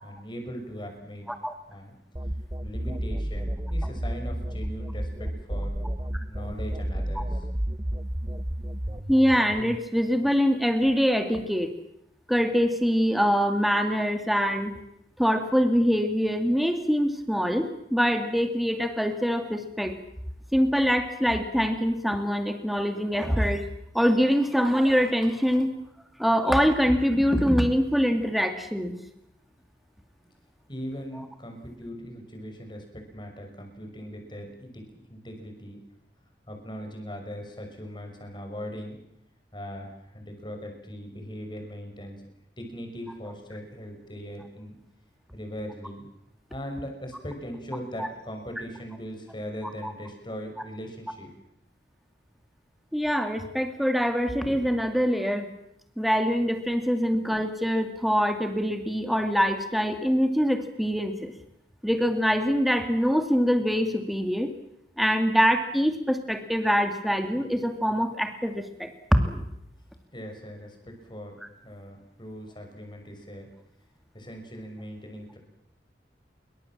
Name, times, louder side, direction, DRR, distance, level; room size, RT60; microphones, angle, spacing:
voice 1, 0.0-1.3 1.7-1.9 2.6-5.7 6.3-7.5 30.7-35.8 36.5-39.0 39.5-42.2 42.6-44.7 45.3-46.1 46.5-51.3 70.1-71.4 71.6-73.5 74.1-75.4, equal, 25° left, 4 dB, 6.0 m, -39 dB
sound 1, 2.2-9.8, right 1 dB, 20° right, 1.0 m, -31 dB
voice 2, 9.1-11.7 12.3-14.7 15.2-19.9 20.5-23.6 23.9-25.7 26.2-29.0 49.8-49.9 52.9-55.5 56.0-61.3 61.8-64.5 65.0-69.4, equal, ahead, 6 dB, 2.4 m, -24 dB
27.5 x 24.0 x 7.5 m, 0.78 s
head